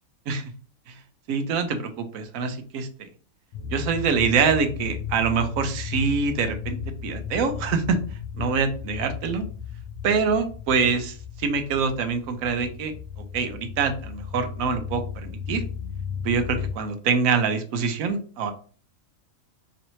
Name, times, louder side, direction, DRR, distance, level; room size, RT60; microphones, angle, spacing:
voice 1, 1.3-3.1 3.7-8.0 8.4-9.4 10.0-12.9 13.3-15.6 16.2-18.5, right 5 dB, 75° right, 8 dB, 1.0 m, -25 dB
sound 1, 3.5-16.7, left 7 dB, 75° left, 1.0 m, -35 dB
3.1 x 2.7 x 3.0 m, 0.40 s
omnidirectional pair, 1.5 m